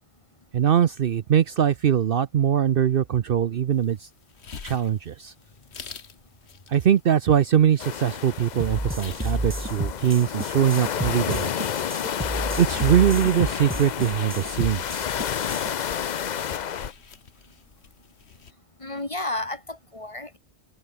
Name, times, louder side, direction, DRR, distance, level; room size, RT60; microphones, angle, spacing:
voice 1, 0.5-4.1 4.6-5.3 6.7-11.5 12.6-15.1, right 9 dB, 60° right, 0.8 m, -22 dB
sound 1, 3.7-18.5, left 6 dB, 70° left, 1.7 m, -47 dB
sound 2, 7.8-16.9, left 8 dB, 50° left, 0.6 m, -30 dB
sound 3, 8.6-15.7, right 1 dB, 10° right, 1.5 m, -31 dB
voice 2, 18.8-20.4, left 2 dB, 30° left, 2.3 m, -32 dB
omnidirectional pair, 1.2 m